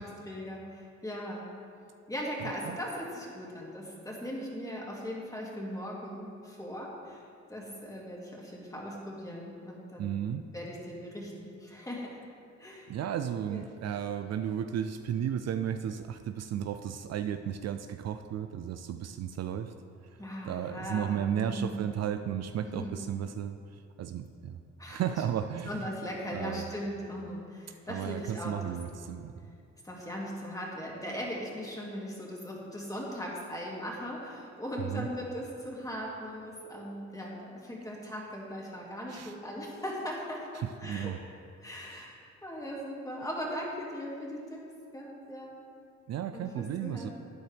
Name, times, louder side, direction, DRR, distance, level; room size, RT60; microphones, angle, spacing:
voice 1, 0.0-1.5 2.1-10.2 10.5-12.2 12.6-13.0 13.5-13.7 20.2-21.9 22.6-23.0 24.8-25.2 25.7-28.6 29.8-41.2 41.6-45.5 46.3-47.1, equal, 10° left, -3 dB, 2.4 m, -39 dB
voice 2, 10.0-10.4 12.9-19.7 20.4-24.6 24.9-25.9 26.3-26.7 27.9-29.3 34.9-35.1 39.1-39.3 40.8-41.2 46.1-47.1, right 9 dB, 60° right, 8 dB, 0.5 m, -34 dB
12.5 x 9.3 x 3.5 m, 2.4 s
cardioid pair, 90°, 30 cm